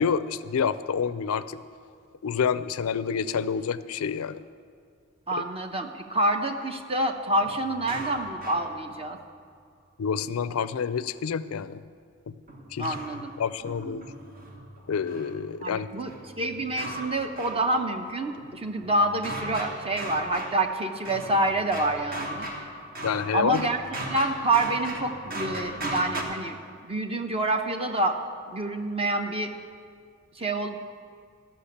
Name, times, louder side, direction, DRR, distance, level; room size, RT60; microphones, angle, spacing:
voice 1, 0.0-1.6 2.2-4.4 5.4-5.5 10.0-11.8 12.3-12.4 12.7-12.9 13.4-14.0 14.9-15.9 23.0-23.7, left 6 dB, 80° left, 15 dB, 0.4 m, -28 dB
voice 2, 5.3-9.2 12.8-13.3 13.6-14.0 15.6-16.1 16.4-22.5 23.3-26.6 26.8-28.2 28.5-29.5 30.4-30.8, right 2 dB, 25° right, 5 dB, 0.8 m, -27 dB
sound 1, 7.4-9.3 12.5-15.4 16.0-18.0 18.4-26.2, right 1 dB, 45° right, 1.4 m, -38 dB
13.0 x 5.9 x 8.5 m, 2.1 s
head